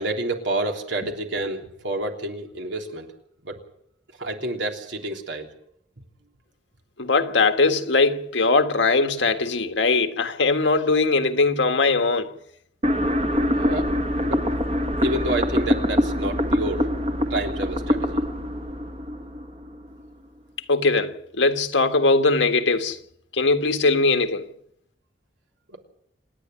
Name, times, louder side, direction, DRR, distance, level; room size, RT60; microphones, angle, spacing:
voice 1, 0.0-3.1 3.4-3.6 4.2-5.5 13.4-13.9 14.2-14.6 15.0-16.9 17.3-18.2 25.7-25.8, right 2 dB, 80° right, 3.4 m, -29 dB
voice 2, 7.0-12.3 20.7-23.0 23.3-24.4, left 3 dB, 80° left, 1.6 m, -20 dB
sound 1, 12.8-19.9, equal, 30° right, 1.5 m, -24 dB
27.5 x 10.0 x 9.9 m
head